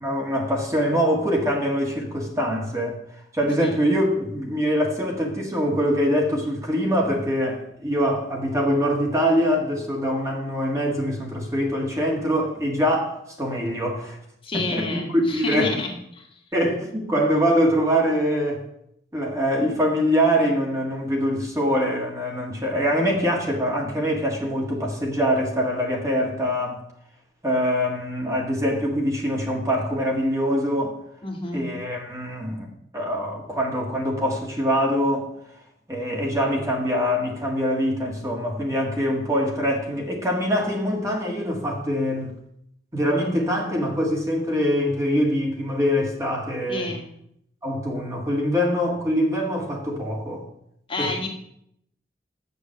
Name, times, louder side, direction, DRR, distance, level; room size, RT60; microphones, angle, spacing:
voice 1, 0.0-3.0 3.3-14.2 14.5-15.8 16.5-18.6 19.1-26.8 27.4-31.0 31.5-32.7 32.9-35.3 35.9-42.3 42.9-46.9 47.6-50.5 51.0-51.3, equal, 20° right, 1.6 m, -24 dB
voice 2, 14.4-16.3 31.2-31.7 46.7-47.1 50.9-51.3, left 2 dB, 30° left, 1.6 m, -29 dB
6.9 x 6.8 x 7.7 m
head